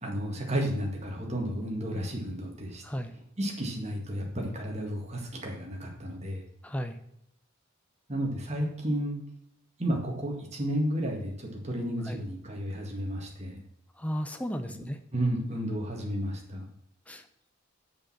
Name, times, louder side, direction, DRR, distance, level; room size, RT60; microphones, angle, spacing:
voice 1, 0.0-2.8 3.4-6.4 8.1-9.2 9.8-13.6 15.1-16.7, equal, 30° right, 0 dB, 1.9 m, -32 dB
voice 2, 6.6-7.0 12.0-12.2 14.0-15.0 17.1-17.2, equal, 5° left, 7 dB, 0.6 m, -34 dB
6.9 x 5.3 x 7.2 m, 0.78 s
head